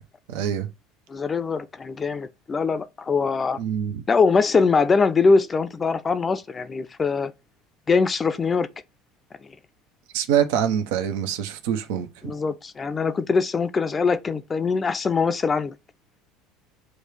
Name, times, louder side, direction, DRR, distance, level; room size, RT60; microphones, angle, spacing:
voice 1, 0.3-0.7 3.6-4.0 10.1-12.1, right 9 dB, 75° right, 0.7 m, -24 dB
voice 2, 1.1-3.6 4.1-7.3 7.9-8.7 12.2-15.7, left 4 dB, 25° left, 0.5 m, -22 dB
6.4 x 2.3 x 3.3 m
hypercardioid pair, 80°, 0 cm